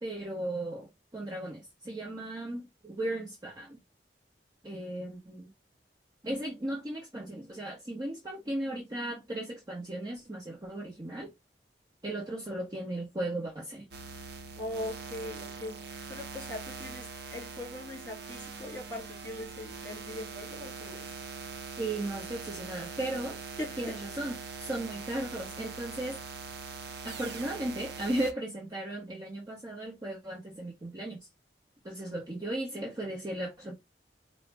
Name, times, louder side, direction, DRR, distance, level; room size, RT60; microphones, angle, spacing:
voice 1, 0.0-0.9 1.1-3.8 4.6-5.5 6.2-11.3 12.0-13.9 21.8-23.4 23.8-26.2 27.0-31.3 31.8-33.7, right 1 dB, 25° right, 0.9 m, -36 dB
sound 1, 13.9-28.3, right 4 dB, 65° right, 0.7 m, -42 dB
voice 2, 14.6-21.1 23.6-24.0, left 1 dB, 10° left, 2.8 m, -41 dB
4.7 x 2.1 x 3.3 m
head